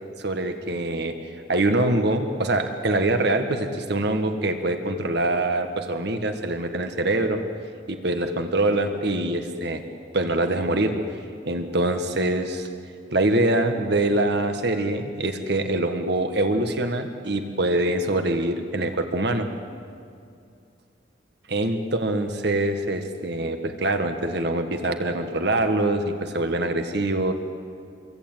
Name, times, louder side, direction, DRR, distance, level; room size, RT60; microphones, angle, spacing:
voice 1, 0.2-7.4 7.9-9.8 10.1-10.9 11.5-12.7 13.1-19.5 21.5-27.3, right 2 dB, 60° right, 6 dB, 1.7 m, -24 dB
27.5 x 22.5 x 9.1 m, 2.4 s
head